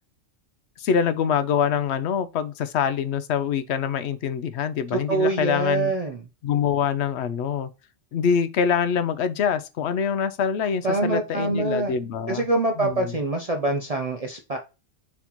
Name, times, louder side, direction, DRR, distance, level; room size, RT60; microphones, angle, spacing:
voice 1, 0.8-5.9 6.4-7.7 8.1-12.5 12.8-13.1, left 7 dB, 70° left, 0.8 m, -25 dB
voice 2, 4.9-6.2 10.8-11.9 12.3-14.6, right 3 dB, 45° right, 0.5 m, -25 dB
4.3 x 4.0 x 2.9 m
omnidirectional pair, 1.3 m